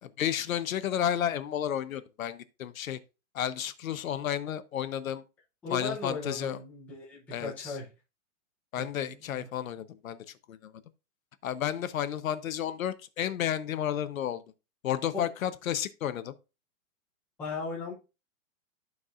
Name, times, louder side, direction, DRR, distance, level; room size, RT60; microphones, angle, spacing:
voice 1, 0.0-3.0 3.3-5.2 5.7-6.6 7.3-7.8 8.7-10.7 11.4-14.4 14.8-16.3, left 10 dB, 85° left, 1.0 m, -32 dB
voice 2, 5.6-7.9 8.8-9.5 15.1-15.3 17.4-17.9, left 4 dB, 5° left, 0.7 m, -37 dB
14.0 x 4.7 x 2.5 m
hypercardioid pair, 180°, 40 cm